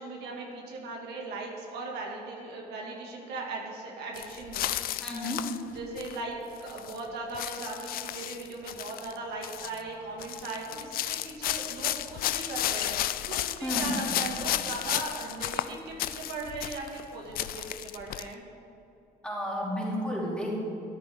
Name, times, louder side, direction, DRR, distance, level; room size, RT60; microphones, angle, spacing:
voice 1, 0.0-4.7 5.7-18.4, right 3 dB, 80° right, -1 dB, 2.0 m, -38 dB
sound 1, 4.2-6.2 6.6-7.0 7.3-9.2 9.4-9.8 10.2-17.1 17.3-18.3, left 13 dB, 60° left, 0.4 m, -33 dB
voice 2, 5.0-5.4 13.6-14.0 19.2-20.5, equal, 5° left, -5 dB, 2.9 m, -32 dB
12.5 x 10.0 x 3.6 m, 2.7 s
cardioid pair, 110°, 17 cm